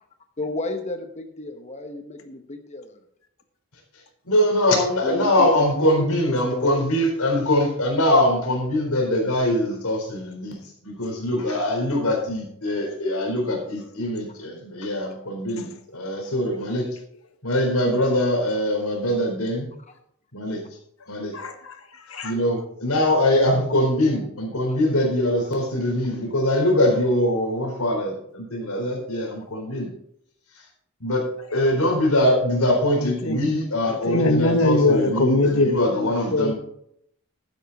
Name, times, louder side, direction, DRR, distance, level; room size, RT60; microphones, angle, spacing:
voice 1, 0.4-3.0 5.0-6.9 12.7-12.8 24.7-24.8, left 2 dB, 30° left, 6 dB, 1.0 m, -32 dB
voice 2, 4.3-10.6 10.8-16.9 17.4-19.7 20.3-20.6 21.1-21.3 22.2-29.9 31.0-31.2 31.5-36.5, left 1 dB, 90° left, 1 dB, 4.2 m, -22 dB
voice 3, 21.3-21.8 22.1-22.3 33.0-33.4 33.9-36.5, left 2 dB, 70° left, 7 dB, 1.4 m, -22 dB
12.0 x 9.9 x 4.1 m, 0.71 s
head